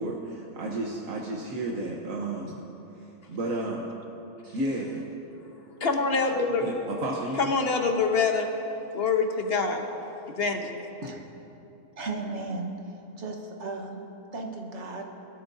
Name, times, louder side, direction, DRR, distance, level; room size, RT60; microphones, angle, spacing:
voice 1, 0.0-2.6 3.3-3.9 4.4-5.0 6.6-7.5, right 2 dB, 75° right, -2 dB, 1.4 m, -32 dB
voice 2, 5.8-6.7 7.3-8.5 8.9-9.8 10.3-10.8, left 4 dB, 50° left, 4 dB, 1.1 m, -25 dB
voice 3, 12.0-12.7 13.2-14.0 14.3-15.1, right 3 dB, 60° right, 2 dB, 1.5 m, -35 dB
21.0 x 12.5 x 2.7 m, 3.0 s
omnidirectional pair, 1.4 m